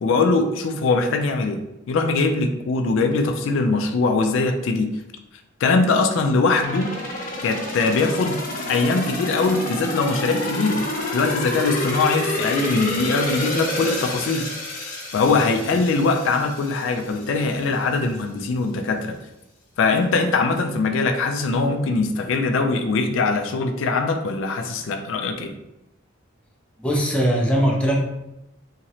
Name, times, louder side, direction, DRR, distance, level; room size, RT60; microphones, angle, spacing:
voice 1, 0.0-5.0 5.6-6.9 7.4-8.4 8.7-10.8 11.1-14.5 15.1-19.2 19.8-25.6, left 3 dB, 70° left, 6 dB, 0.3 m, -21 dB
sound 1, 6.5-17.3 17.7-17.8, left 1 dB, 45° left, 0.7 m, -29 dB
voice 2, 26.8-28.0, equal, 5° left, -2 dB, 0.5 m, -20 dB
2.9 x 2.7 x 2.9 m, 0.89 s
head